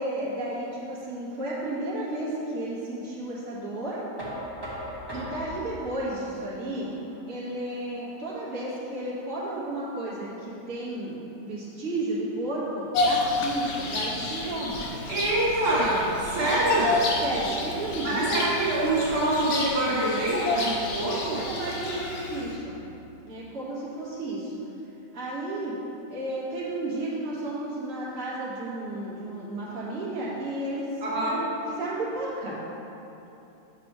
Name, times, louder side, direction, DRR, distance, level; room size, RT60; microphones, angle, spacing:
voice 1, 0.0-4.0 5.1-6.9 7.3-14.8 16.4-16.6 17.2-18.3 21.4-22.8 23.3-24.5 25.1-25.8 26.1-32.6, right 1 dB, 55° right, -8 dB, 1.9 m, -33 dB
Knock, 4.2-10.0, equal, 15° right, 1.2 m, -41 dB
Bird vocalization bird call bird song, 12.9-22.6, left 2 dB, 65° left, 1.2 m, -30 dB
voice 2, 15.1-16.9 18.0-21.4 31.0-31.4, right 1 dB, 85° right, -7 dB, 1.8 m, -25 dB
7.7 x 6.0 x 3.0 m, 2.9 s
omnidirectional pair, 1.7 m